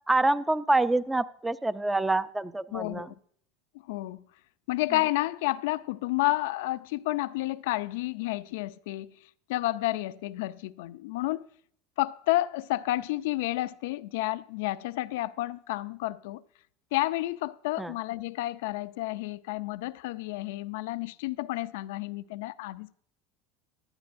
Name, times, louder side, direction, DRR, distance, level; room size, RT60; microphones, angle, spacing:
voice 1, 0.1-3.1 17.8-17.9, right 2 dB, 10° right, 0.5 m, -26 dB
voice 2, 2.7-3.1 3.9-4.2 4.7-9.1 9.5-11.5 12.0-16.4 16.9-22.9, left 17 dB, 80° left, 0.4 m, -30 dB
16.0 x 11.5 x 2.6 m
supercardioid pair, 120°, 0 cm